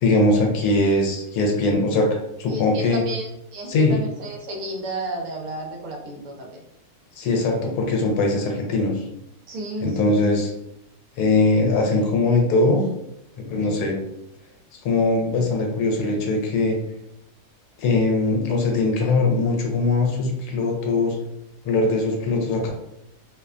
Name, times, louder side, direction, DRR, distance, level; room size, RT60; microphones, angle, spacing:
voice 1, 0.0-3.0 3.7-4.0 7.2-9.1 9.8-10.5 11.2-12.8 13.4-14.0 14.8-16.8 17.8-21.2 21.6-22.7, left 2 dB, 85° left, 2 dB, 1.1 m, -21 dB
voice 2, 2.5-6.6 9.5-10.2 13.5-13.8, right 1 dB, 65° right, 1 dB, 0.9 m, -32 dB
2.7 x 2.1 x 2.4 m, 0.81 s
omnidirectional pair, 1.6 m